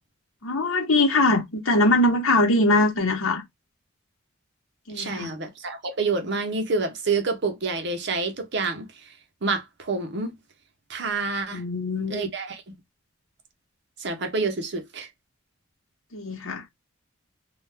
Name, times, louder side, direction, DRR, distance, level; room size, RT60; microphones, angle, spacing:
voice 1, 0.4-3.4 4.9-5.3 11.5-12.3 16.1-16.6, left 2 dB, 85° left, 0.9 m, -22 dB
voice 2, 4.9-9.1 9.4-10.4 10.9-11.6 12.1-12.8 14.0-15.1, right 4 dB, 55° right, 0.7 m, -28 dB
2.3 x 2.1 x 3.3 m
head